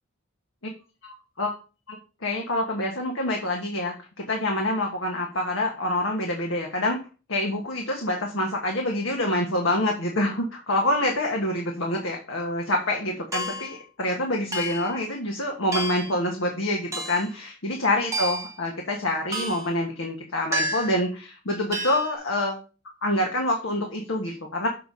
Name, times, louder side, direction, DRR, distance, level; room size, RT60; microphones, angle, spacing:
voice 1, 1.0-1.5 1.9-7.0 7.3-22.6 23.0-24.7, left 1 dB, 70° left, 1 dB, 1.3 m, -26 dB
sound 1, 13.3-13.8 14.5-15.0 15.7-16.2 16.9-17.3 18.1-18.6 19.3-19.7 20.5-21.0 21.7-22.1, right 1 dB, 15° right, 1.2 m, -30 dB
6.7 x 4.0 x 5.4 m, 0.33 s
head